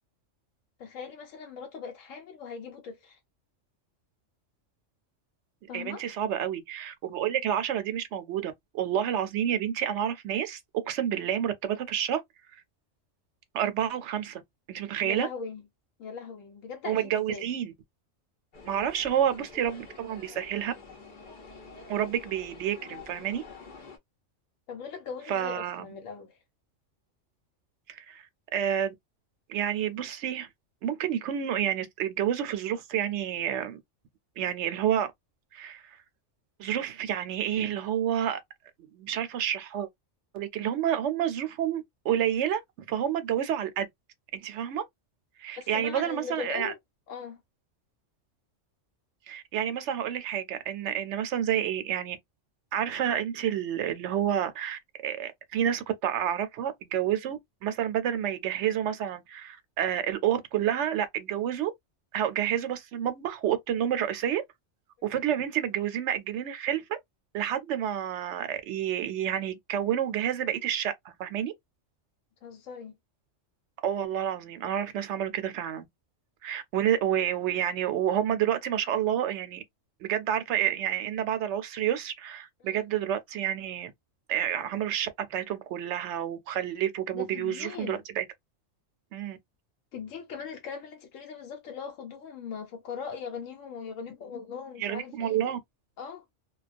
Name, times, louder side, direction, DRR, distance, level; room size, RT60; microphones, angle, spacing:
voice 1, 0.8-3.2 5.7-6.0 15.0-15.6 16.0-17.5 24.7-26.4 45.6-46.8 47.1-47.4 72.4-72.9 82.6-82.8 87.1-88.0 89.9-95.5 96.0-96.2, left 6 dB, 90° left, 1.1 m, -40 dB
voice 2, 5.7-12.2 13.5-14.4 14.7-15.3 16.8-17.7 18.7-20.7 21.9-23.4 25.3-25.9 27.9-28.2 28.5-28.9 29.5-30.5 30.8-33.8 34.4-35.1 35.5-35.8 36.6-38.4 38.9-39.9 40.3-42.6 42.9-43.9 44.3-44.8 45.4-46.7 49.3-52.2 52.7-61.7 62.1-64.4 65.0-67.0 67.3-71.5 73.8-75.9 76.4-79.6 80.0-83.9 84.3-88.2 89.1-89.4 94.8-95.6, right 10 dB, 70° right, 0.9 m, -29 dB
sound 1, 18.5-24.0, left 4 dB, 50° left, 0.7 m, -47 dB
2.3 x 2.2 x 2.4 m
omnidirectional pair, 1.3 m